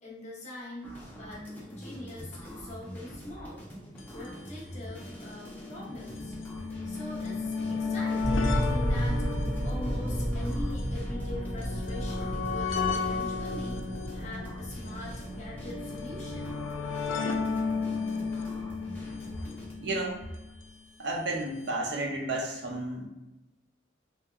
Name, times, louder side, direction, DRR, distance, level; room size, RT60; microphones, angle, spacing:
voice 1, 0.0-3.6 4.1-6.3 6.8-9.3 9.6-13.8 14.1-16.6, left 1 dB, 35° left, -5 dB, 0.8 m, -43 dB
sound 1, 0.8-19.7, equal, 10° left, 0.4 m, -44 dB
sound 2, 4.0-4.1 4.3-4.4 5.2-20.5 21.4-21.5 21.7-21.8, left 4 dB, 80° left, 0.3 m, -34 dB
sound 3, 8.2-16.5, equal, 85° right, 0.9 m, -32 dB
voice 2, 19.8-20.2 21.0-23.1, right 2 dB, 65° right, 0 dB, 0.5 m, -32 dB
3.4 x 2.2 x 2.2 m, 1.0 s
head